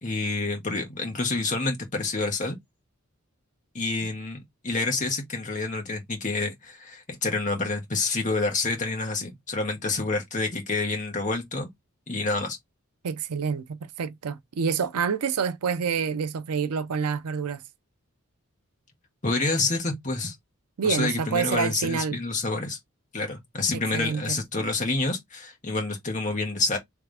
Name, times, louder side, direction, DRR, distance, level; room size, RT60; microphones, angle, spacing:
voice 1, 0.0-2.6 3.7-11.7 12.1-12.6 19.2-20.3 20.8-22.8 23.1-26.8, left 3 dB, 35° left, 1.3 m, -28 dB
voice 2, 13.0-17.6 20.8-22.2 23.7-24.4, right 6 dB, 85° right, 0.5 m, -27 dB
3.5 x 3.3 x 3.4 m
head